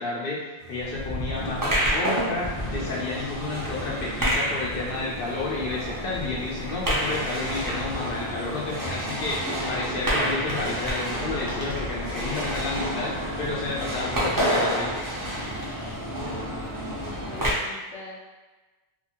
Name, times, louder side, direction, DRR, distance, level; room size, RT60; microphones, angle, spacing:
voice 1, 0.0-13.1 13.4-14.9, left 3 dB, 60° left, -3 dB, 0.7 m, -31 dB
sound 1, 0.6-9.2, right 1 dB, 60° right, 0.8 m, -46 dB
sound 2, 0.9-16.2 16.6-17.1, left 1 dB, 20° left, 0.7 m, -40 dB
sound 3, 1.3-17.5, equal, 25° right, 0.4 m, -29 dB
voice 2, 3.4-3.8 12.2-13.5 15.7-18.2, left 3 dB, 75° left, -4 dB, 1.1 m, -44 dB
2.7 x 2.6 x 2.8 m, 1.2 s
omnidirectional pair, 1.2 m